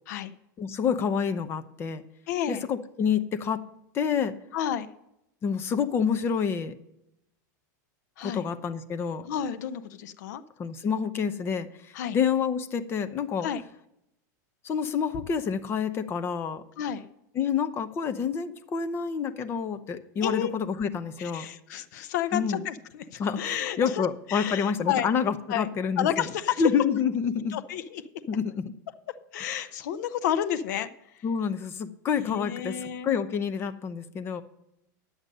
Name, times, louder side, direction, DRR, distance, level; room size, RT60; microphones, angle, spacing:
voice 1, 0.6-2.0 2.5-3.6 3.9-4.4 5.4-6.8 8.2-9.3 10.6-13.5 14.6-16.6 17.4-21.5 22.3-22.6 23.2-26.3 26.6-27.6 28.3-28.7 31.2-34.4, left 6 dB, 25° left, 11 dB, 0.7 m, -28 dB
voice 2, 2.3-2.6 4.5-4.9 8.2-8.5 9.2-10.4 11.9-12.2 13.4-13.6 16.8-17.0 20.2-20.5 21.2-25.1 25.5-25.7 26.0-26.6 27.5-28.0 29.3-31.2 32.2-33.1, left 10 dB, 65° left, 11 dB, 0.7 m, -31 dB
10.5 x 8.0 x 5.3 m, 0.82 s
supercardioid pair, 145°, 10 cm